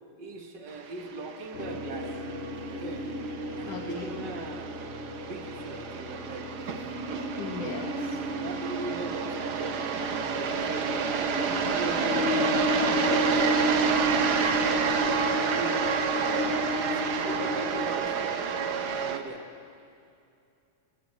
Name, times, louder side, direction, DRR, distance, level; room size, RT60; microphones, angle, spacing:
voice 1, 0.2-2.1 2.7-3.1 3.6-4.9 5.2-6.5 8.4-10.6 11.0-12.4 12.7-13.7 14.2-15.8 16.3-18.3 19.0-19.5, right 3 dB, 40° right, 4 dB, 2.0 m, -40 dB
sound 1, 0.9-19.2, right 6 dB, 65° right, 1.0 m, -30 dB
sound 2, 1.5-17.8, equal, 60° left, 0.6 m, -33 dB
voice 2, 3.6-4.3 7.4-8.2 19.0-19.1, left 4 dB, 85° left, -7 dB, 3.8 m, -38 dB
28.5 x 13.0 x 7.9 m, 2.5 s
omnidirectional pair, 3.4 m